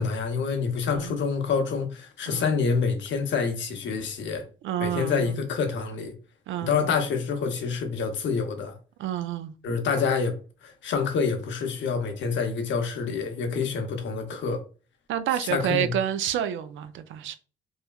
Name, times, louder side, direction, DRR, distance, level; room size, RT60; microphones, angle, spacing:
voice 1, 0.0-4.4 4.8-6.1 6.6-8.7 9.6-10.4 10.6-14.6 15.4-15.9, left 5 dB, 70° left, 0.7 m, -27 dB
voice 2, 4.6-5.4 6.5-6.8 9.0-9.5 15.1-17.3, right 10 dB, 75° right, 0.4 m, -29 dB
3.1 x 2.2 x 2.3 m
cardioid pair, 90°, 20 cm